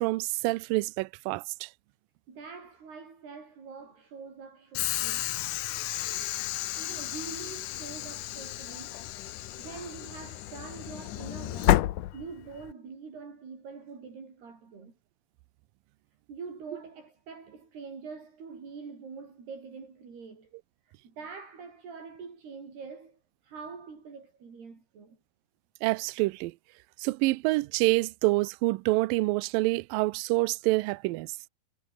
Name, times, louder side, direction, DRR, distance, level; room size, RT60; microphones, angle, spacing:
voice 1, 0.0-1.7 25.8-26.5 27.0-31.4, right 21 dB, 85° right, 2.0 m, -27 dB
voice 2, 2.3-5.3 6.8-9.0 9.6-14.9 16.3-20.5 20.8-25.2, right 5 dB, 70° right, 7.9 m, -45 dB
Train / Sliding door, 4.7-12.7, left 15 dB, 75° left, 1.9 m, -31 dB
omnidirectional pair, 4.9 m